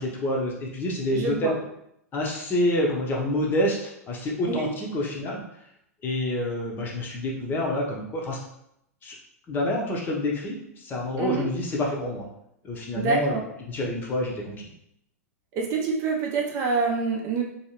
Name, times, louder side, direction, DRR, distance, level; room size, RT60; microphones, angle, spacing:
voice 1, 0.0-1.6 2.1-5.4 6.0-8.4 9.0-9.1 9.5-12.3 12.6-13.4 13.7-14.7, left 1 dB, 25° left, -1 dB, 0.7 m, -27 dB
voice 2, 1.1-1.5 4.5-4.7 11.2-11.5 12.9-13.4 15.5-17.4, right 4 dB, 35° right, 0 dB, 0.6 m, -26 dB
3.1 x 2.7 x 2.9 m, 0.76 s
figure-of-eight pair, 100°, 8 cm